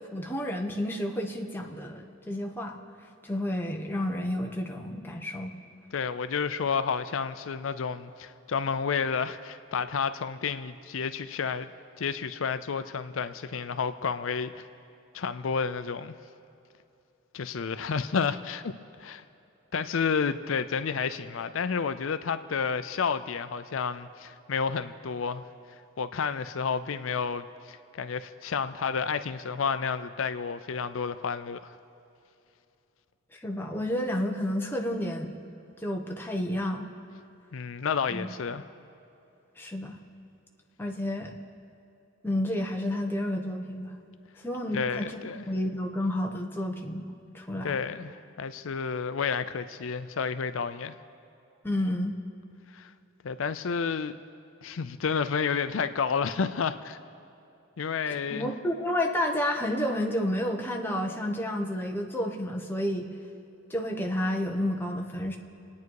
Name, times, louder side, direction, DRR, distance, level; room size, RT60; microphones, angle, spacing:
voice 1, 0.1-2.8 3.2-5.5 33.3-35.3 35.8-36.9 38.1-38.3 39.6-40.0 40.8-41.3 42.2-43.9 44.4-45.2 45.5-47.8 51.6-52.1 58.3-63.1 63.7-65.4, left 1 dB, 10° left, 1 dB, 1.1 m, -30 dB
voice 2, 5.9-11.7 12.0-14.7 15.1-16.2 17.3-18.7 19.0-19.2 19.7-25.4 26.0-31.7 37.5-38.6 44.7-45.4 47.6-51.0 52.7-52.9 53.2-54.2 54.6-57.0 57.8-58.5, left 6 dB, 75° left, 12 dB, 0.5 m, -30 dB
28.0 x 9.5 x 4.7 m, 2.7 s
head